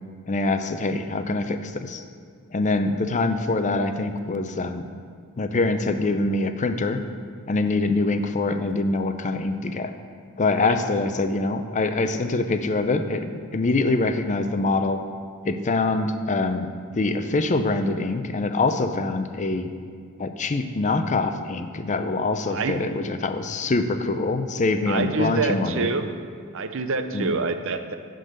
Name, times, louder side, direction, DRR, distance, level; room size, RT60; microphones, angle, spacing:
voice 1, 0.3-2.0 2.5-4.9 5.4-7.0 7.5-9.9 10.4-15.0 15.4-16.7 17.0-19.7 20.2-25.9 27.1-27.4, left 3 dB, 35° left, 8 dB, 0.5 m, -24 dB
voice 2, 22.5-22.8 24.9-26.1 26.5-27.9, right 4 dB, 65° right, 8 dB, 0.6 m, -26 dB
11.5 x 3.9 x 7.8 m, 2.1 s
head